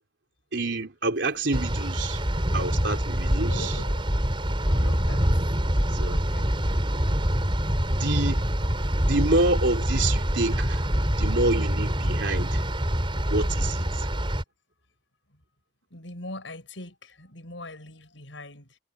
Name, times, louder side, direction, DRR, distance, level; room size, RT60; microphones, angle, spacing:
voice 1, 0.5-2.2 2.5-3.8 4.8-4.9 6.0-6.2 7.9-8.5 9.1-10.8 11.2-12.6 13.3-14.1, right 2 dB, 70° right, 3.6 m, -27 dB
sound 1, 1.5-14.4, equal, 25° right, 4.7 m, -25 dB
voice 2, 3.5-4.2 4.6-5.2 6.1-6.5 15.9-18.8, left 2 dB, 75° left, 6.2 m, -42 dB
head